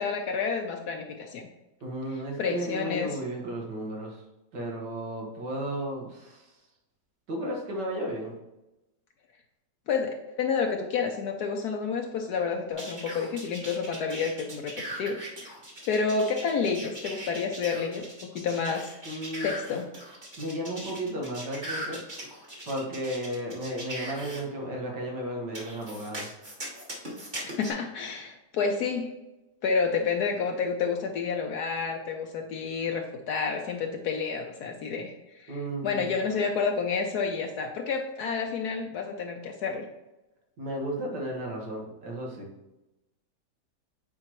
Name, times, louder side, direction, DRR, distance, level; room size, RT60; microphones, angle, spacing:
voice 1, 0.0-1.4 2.4-3.2 9.9-15.5 15.9-18.0 18.3-18.9 19.4-19.9 27.4-29.1 29.6-35.6 35.8-39.8, left 5 dB, 70° left, 2 dB, 1.2 m, -29 dB
voice 2, 1.8-4.2 4.5-6.6 7.3-8.3 19.1-19.5 20.4-22.0 22.6-26.3 35.5-36.1 40.6-42.5, right 1 dB, 85° right, -1 dB, 2.2 m, -34 dB
sound 1, 12.8-24.4 25.5-27.7, right 1 dB, 30° right, 1.7 m, -39 dB
8.7 x 4.7 x 3.0 m, 0.99 s
omnidirectional pair, 1.8 m